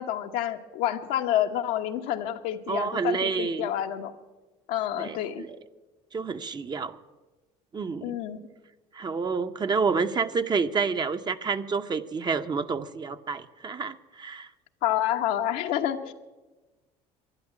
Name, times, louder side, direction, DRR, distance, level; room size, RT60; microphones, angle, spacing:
voice 1, 0.0-4.1 4.7-5.4 8.0-8.4 14.8-16.1, left 11 dB, 80° left, 5 dB, 1.1 m, -28 dB
voice 2, 2.7-3.7 5.0-5.5 6.1-7.0 7.7-8.2 8.9-14.5, right 5 dB, 30° right, 9 dB, 0.8 m, -29 dB
12.0 x 10.5 x 9.8 m, 1.2 s
supercardioid pair, 90°, 14 cm